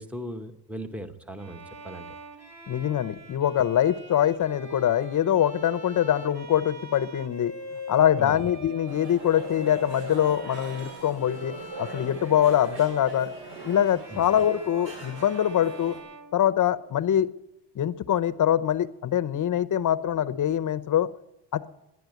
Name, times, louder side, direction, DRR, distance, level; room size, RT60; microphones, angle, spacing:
voice 1, 0.0-2.1 8.2-8.4 14.1-14.3, right 1 dB, 5° right, 8 dB, 0.9 m, -38 dB
Bowed string instrument, 1.4-17.1, left 1 dB, 40° right, 2.5 m, -43 dB
voice 2, 2.7-7.5 7.9-13.3 13.6-16.0 16.3-17.3 17.8-21.1 21.5-21.7, left 10 dB, 45° left, 12 dB, 0.7 m, -24 dB
sound 1, 8.9-16.0, right 2 dB, 75° right, 5.5 m, -42 dB
12.0 x 10.5 x 9.2 m, 0.90 s
cardioid pair, 140°, 43 cm